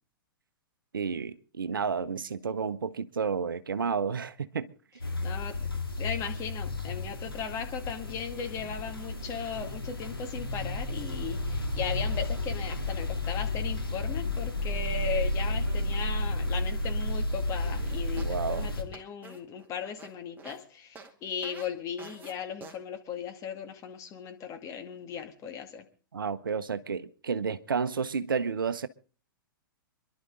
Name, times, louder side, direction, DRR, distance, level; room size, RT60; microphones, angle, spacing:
voice 1, 0.9-4.7 18.2-18.7 26.1-28.9, right 6 dB, 70° right, 0.9 m, -31 dB
sound 1, 5.0-18.8, left 1 dB, 85° left, 2.3 m, -32 dB
voice 2, 5.2-5.7 6.0-25.8, left 7 dB, 25° left, 2.3 m, -37 dB
sound 2, 17.8-20.6 21.0-21.1 21.4-21.7 22.0-22.3 22.6-22.8, right 4 dB, 15° right, 2.3 m, -48 dB
26.5 x 11.5 x 3.8 m
figure-of-eight pair, 105°, 12 cm